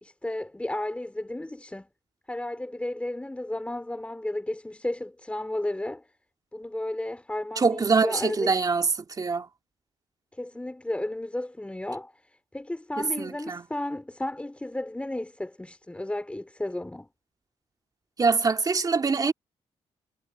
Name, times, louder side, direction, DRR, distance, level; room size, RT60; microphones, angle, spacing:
voice 1, 0.0-1.9 2.3-6.1 6.5-8.5 10.3-17.1, left 1 dB, 10° left, 4.1 m, -33 dB
voice 2, 7.6-8.9 9.2-9.5 13.0-13.6 18.2-19.3, right 4 dB, 35° right, 2.4 m, -24 dB
cardioid pair, 90°, 12 cm